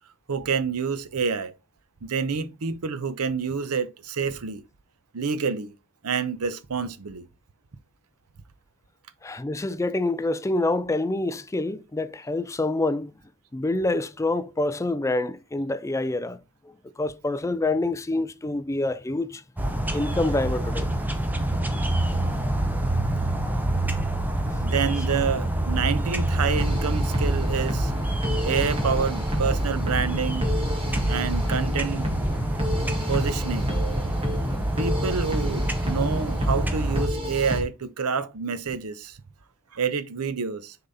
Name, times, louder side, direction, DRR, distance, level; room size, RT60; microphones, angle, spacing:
voice 1, 0.3-1.5 2.0-4.6 5.1-5.7 6.0-7.3 24.6-27.9 28.4-30.5 31.1-32.1 33.1-33.7 34.8-39.2 39.7-40.8, right 5 dB, 90° right, 0.7 m, -28 dB
voice 2, 9.2-13.1 13.5-19.4 19.9-20.9, left 2 dB, 15° left, 0.4 m, -27 dB
sound 1, 19.6-37.1, right 1 dB, 10° right, 0.8 m, -27 dB
sound 2, 26.6-37.6, equal, 25° right, 1.8 m, -30 dB
6.7 x 3.9 x 4.0 m
head